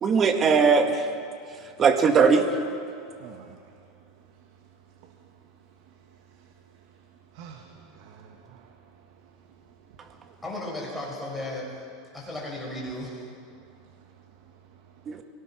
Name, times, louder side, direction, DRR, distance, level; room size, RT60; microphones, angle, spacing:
voice 1, 0.0-1.1 1.8-2.6 15.1-15.2, right 5 dB, 25° right, 1.8 m, -20 dB
voice 2, 3.2-10.4 13.5-15.2, right 7 dB, 60° right, 1.7 m, -52 dB
voice 3, 10.4-11.8 12.1-13.2, left 1 dB, 5° left, 6.6 m, -35 dB
24.0 x 18.0 x 6.2 m
supercardioid pair, 140°, 0 cm